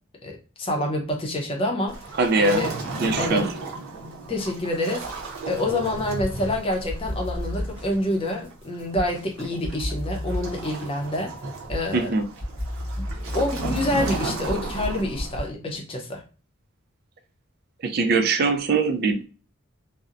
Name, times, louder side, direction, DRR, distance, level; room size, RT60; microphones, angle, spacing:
voice 1, 0.2-2.0 2.4-2.7 3.2-3.5 4.3-5.1 5.4-11.3 11.7-12.1 13.0-13.1 13.3-16.2, left 1 dB, 25° left, 0.5 m, -27 dB
Waves surf, 1.9-15.5, right 3 dB, 85° right, 0.7 m, -35 dB
voice 2, 2.2-2.6 3.0-3.5 11.9-12.2 17.8-19.3, right 3 dB, 50° right, 0.3 m, -22 dB
sound 1, 5.0-6.5 6.9-9.3 9.6-15.4, equal, 5° right, 1.0 m, -33 dB
2.7 x 2.0 x 2.4 m
head